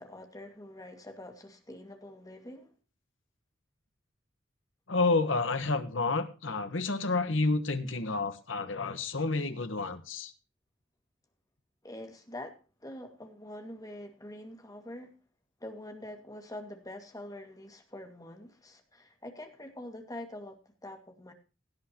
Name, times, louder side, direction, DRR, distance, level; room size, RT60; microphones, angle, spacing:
voice 1, 0.0-2.7 11.8-15.1 15.6-21.3, left 1 dB, 20° left, 2.1 m, -45 dB
voice 2, 4.9-10.3, left 3 dB, 85° left, 1.4 m, -30 dB
17.0 x 10.5 x 3.0 m
head